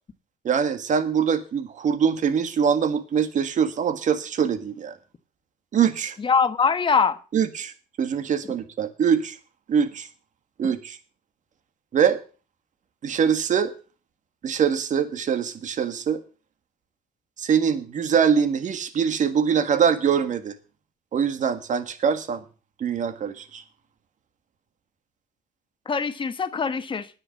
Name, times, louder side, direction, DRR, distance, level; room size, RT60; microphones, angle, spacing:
voice 1, 0.4-5.0 5.7-6.2 7.3-9.4 9.7-10.1 10.6-11.0 11.9-12.2 13.0-13.7 14.4-16.2 17.4-20.6 21.1-22.4 22.8-23.6, right 7 dB, 45° right, 1.7 m, -23 dB
voice 2, 6.2-7.2 10.6-10.7 25.9-27.1, left 5 dB, 30° left, 1.3 m, -23 dB
9.8 x 8.2 x 7.5 m
cardioid pair, 110°, 17 cm